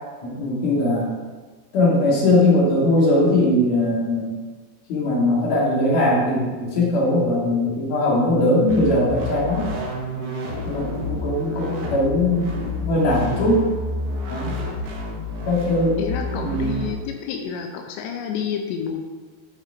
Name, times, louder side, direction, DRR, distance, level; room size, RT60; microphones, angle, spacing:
voice 1, 0.2-1.1 1.7-4.3 4.9-9.7 10.6-13.7 14.3-14.6 15.4-16.0 16.4-16.7, left 1 dB, 45° left, -5 dB, 2.9 m, -20 dB
sound 1, 8.7-16.9, left 1 dB, 65° right, 2.0 m, -29 dB
voice 2, 16.0-19.1, left 7 dB, 90° left, 4 dB, 2.5 m, -29 dB
11.0 x 5.5 x 4.9 m, 1.4 s
omnidirectional pair, 5.8 m